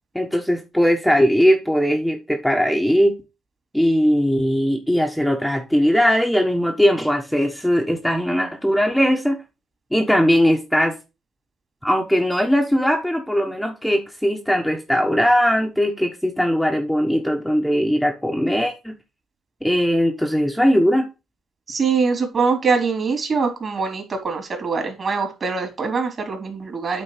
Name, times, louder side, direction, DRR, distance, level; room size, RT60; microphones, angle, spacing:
voice 1, 0.1-3.2 3.7-9.4 9.9-10.9 11.8-18.9 19.6-21.0, equal, ahead, 2 dB, 1.2 m, -19 dB
voice 2, 21.7-27.0, right 4 dB, 45° right, 4 dB, 3.4 m, -23 dB
8.8 x 3.9 x 5.7 m, 0.28 s
cardioid pair, 90°, 0 cm